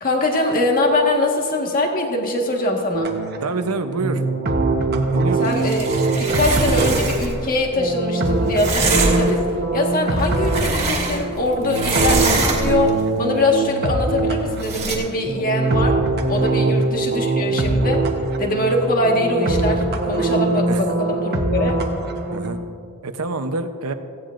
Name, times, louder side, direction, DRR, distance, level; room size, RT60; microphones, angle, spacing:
voice 1, 0.0-3.1 5.4-5.9 6.2-16.0 16.3-18.0 18.4-21.8, left 1 dB, 40° left, 1 dB, 1.6 m, -22 dB
sound 1, 2.9-22.6, right 2 dB, 50° right, 1.1 m, -22 dB
voice 2, 3.4-4.2 5.1-5.5 16.7-16.8 20.7-20.8 22.3-22.6 23.0-23.9, right 3 dB, 85° right, 8 dB, 0.8 m, -26 dB
sound 2, 5.4-7.4 8.6-9.4 10.1-11.4 11.7-12.9 14.6-15.0, right 3 dB, 30° right, 2.1 m, -24 dB
18.0 x 15.5 x 2.6 m, 2.4 s
head